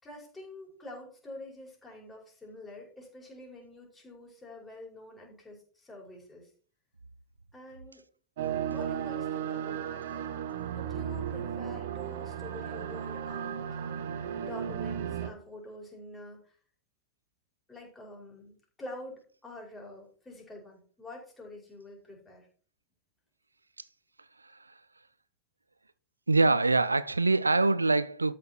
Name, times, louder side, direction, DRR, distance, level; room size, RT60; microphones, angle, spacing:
voice 1, 0.0-6.5 7.5-8.0 8.7-10.3 10.7-13.9 14.4-16.6 17.7-22.5, left 1 dB, 15° left, 5.1 m, -47 dB
sound 1, 8.4-15.3, right 8 dB, 55° right, 1.3 m, -35 dB
voice 2, 26.3-28.3, right 3 dB, 80° right, 0.4 m, -24 dB
13.0 x 6.4 x 4.5 m
figure-of-eight pair, 90°, 0 cm